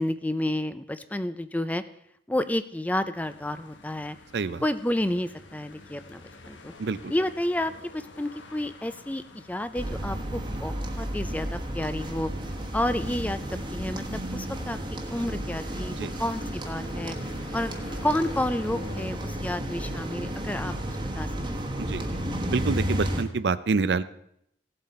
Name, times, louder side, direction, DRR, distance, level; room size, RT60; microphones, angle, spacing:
voice 1, 0.0-1.8 2.3-4.2 4.6-6.7 7.1-12.3 12.7-13.4 13.7-14.8 15.1-17.2 17.5-17.7 18.0-21.6, left 1 dB, 10° left, 12 dB, 0.4 m, -30 dB
sound 1, 3.1-19.1, left 3 dB, 80° left, 1.2 m, -49 dB
voice 2, 6.8-7.1 16.0-16.1 21.8-22.1 22.5-24.0, right 4 dB, 65° right, 15 dB, 0.5 m, -27 dB
sound 2, 9.8-23.2, equal, 25° right, 1.2 m, -32 dB
16.0 x 7.8 x 4.2 m, 0.73 s
head